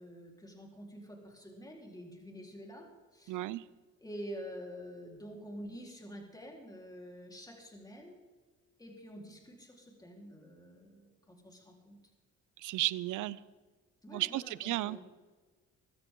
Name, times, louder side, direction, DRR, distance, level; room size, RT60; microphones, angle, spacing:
voice 1, 0.0-3.4 4.0-8.2 8.8-12.0 14.0-15.0, equal, 10° left, -1 dB, 4.1 m, -48 dB
voice 2, 3.3-3.6 12.6-13.4 14.1-15.1, right 16 dB, 85° right, 19 dB, 0.6 m, -34 dB
23.0 x 14.0 x 3.8 m, 1.3 s
cardioid pair, 90°, 30 cm